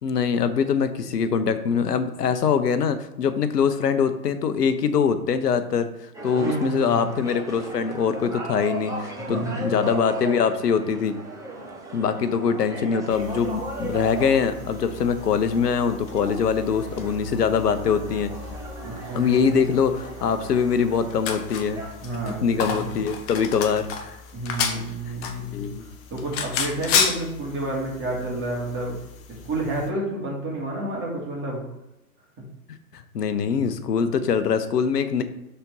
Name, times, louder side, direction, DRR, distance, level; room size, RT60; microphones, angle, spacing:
voice 1, 0.0-5.9 6.2-11.2 11.9-18.3 19.1-21.8 22.4-24.2 25.1-25.2 25.5-25.8 32.7-35.2, left 6 dB, 80° left, 10 dB, 1.0 m, -23 dB
sound 1, 6.1-21.9, right 2 dB, 5° right, 1.2 m, -37 dB
voice 2, 6.4-7.0 9.3-9.8 18.8-19.8 22.0-23.1 24.3-25.7 26.1-29.0 29.3-31.6, right 2 dB, 25° right, -3 dB, 2.7 m, -30 dB
sound 2, 13.1-29.9, left 6 dB, 30° left, 1.0 m, -33 dB
5.8 x 4.4 x 5.4 m, 0.91 s
hypercardioid pair, 115°, 47 cm